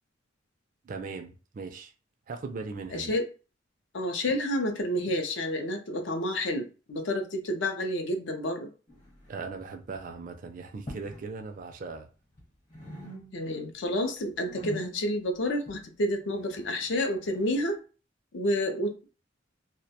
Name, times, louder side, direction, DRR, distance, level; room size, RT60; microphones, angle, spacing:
voice 1, 0.8-1.9 2.3-3.1 9.3-12.1, right 4 dB, 45° right, 0.3 m, -39 dB
voice 2, 2.9-3.3 3.9-8.7 13.3-17.8 18.3-19.1, left 1 dB, 65° left, 0.5 m, -29 dB
sound 1, 8.9-9.6 9.8-10.2 10.7-11.3 11.6-12.4 12.7-13.7 14.0-17.7, right 1 dB, 40° left, 0.9 m, -45 dB
2.2 x 2.1 x 2.7 m
head